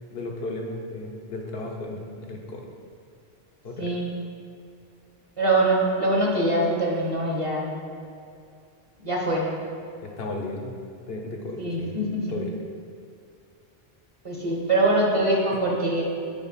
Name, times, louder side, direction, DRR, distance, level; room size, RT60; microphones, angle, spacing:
voice 1, 0.1-2.7 3.6-3.9 10.0-10.7 11.1-12.0 12.3-12.6, left 2 dB, 70° left, 0 dB, 1.0 m, -34 dB
voice 2, 3.8-4.1 5.4-7.7 9.0-9.5 11.6-12.3 14.2-16.0, right 2 dB, 35° right, -2 dB, 1.0 m, -23 dB
5.1 x 4.6 x 5.6 m, 2.4 s
omnidirectional pair, 1.0 m